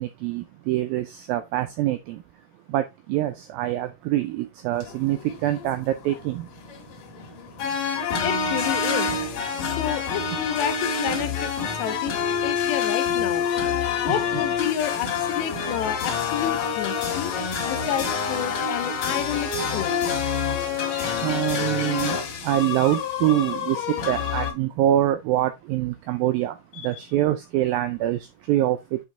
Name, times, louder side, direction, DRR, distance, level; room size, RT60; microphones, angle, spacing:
voice 1, 0.0-2.2 2.7-6.5 14.1-14.2 21.2-29.0, right 13 dB, 90° right, 2.0 m, -25 dB
sound 1, 4.7-24.5, left 6 dB, 60° left, 3.1 m, -27 dB
voice 2, 8.2-9.2 9.6-13.5 14.0-17.3 17.6-20.0 26.7-26.9, left 10 dB, 85° left, 3.0 m, -30 dB
8.5 x 4.5 x 3.2 m
omnidirectional pair, 4.8 m